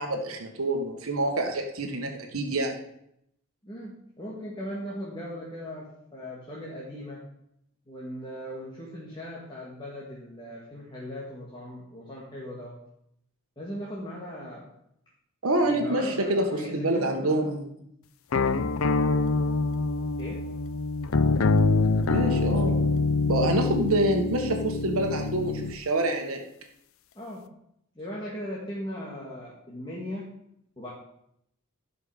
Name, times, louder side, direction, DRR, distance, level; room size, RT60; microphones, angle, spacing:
voice 1, 0.0-2.7 15.4-17.6 22.1-22.9 23.3-26.4, right 1 dB, 80° right, 3 dB, 1.3 m, -27 dB
voice 2, 3.6-7.3 7.9-12.8 13.6-14.7 15.6-17.5 20.2-20.4 27.2-27.5 28.0-30.3 30.8-30.9, equal, 20° left, -5 dB, 1.9 m, -38 dB
sound 1, 18.3-25.8, left 3 dB, 75° left, 0.6 m, -25 dB
16.5 x 5.6 x 5.0 m, 0.76 s
head